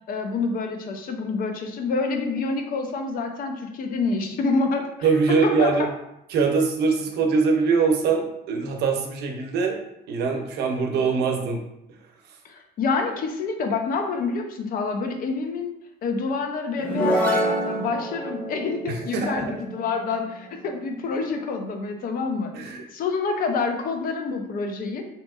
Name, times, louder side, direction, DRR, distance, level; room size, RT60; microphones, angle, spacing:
voice 1, 0.1-4.9 5.4-5.9 12.4-15.7 16.0-22.5 22.9-25.0, left 4 dB, 60° left, 5 dB, 0.5 m, -27 dB
voice 2, 5.0-5.9 6.3-9.8 10.1-11.6 18.9-19.5 22.5-22.8, right 5 dB, 75° right, 3 dB, 0.6 m, -23 dB
sound 1, 16.8-20.4, right 1 dB, 10° left, 0.9 m, -27 dB
3.5 x 2.9 x 2.3 m, 0.83 s
cardioid pair, 110°, 17 cm